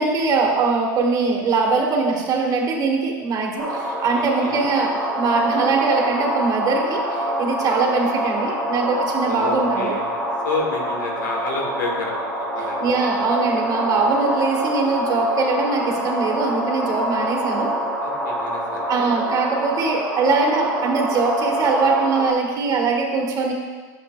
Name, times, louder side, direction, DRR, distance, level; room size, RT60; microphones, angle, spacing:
voice 1, 0.0-9.9 12.8-17.7 18.9-23.5, right 4 dB, 40° right, 0 dB, 1.6 m, -22 dB
sound 1, 3.6-22.3, right 1 dB, 5° left, 1.7 m, -26 dB
voice 2, 4.1-4.6 9.2-12.1 12.5-12.8 18.0-18.8, left 3 dB, 90° left, 0 dB, 1.7 m, -29 dB
10.5 x 7.2 x 2.3 m, 1.5 s
hypercardioid pair, 105°, 10 cm